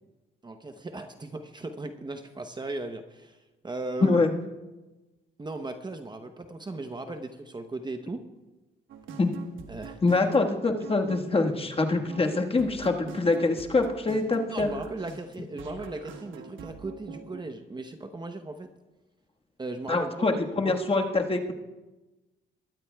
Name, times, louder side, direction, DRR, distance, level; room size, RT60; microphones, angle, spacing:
voice 1, 0.4-4.2 5.4-8.2 9.7-10.2 14.5-18.7 19.6-20.9, right 2 dB, 20° right, 7 dB, 0.8 m, -37 dB
voice 2, 4.0-4.3 9.2-9.3 10.0-14.7 19.9-21.5, left 3 dB, 30° left, 2 dB, 1.5 m, -24 dB
sound 1, 8.9-17.4, right 6 dB, 80° right, 1.3 m, -44 dB
21.0 x 13.5 x 2.3 m, 1.1 s
cardioid pair, 90°, 20 cm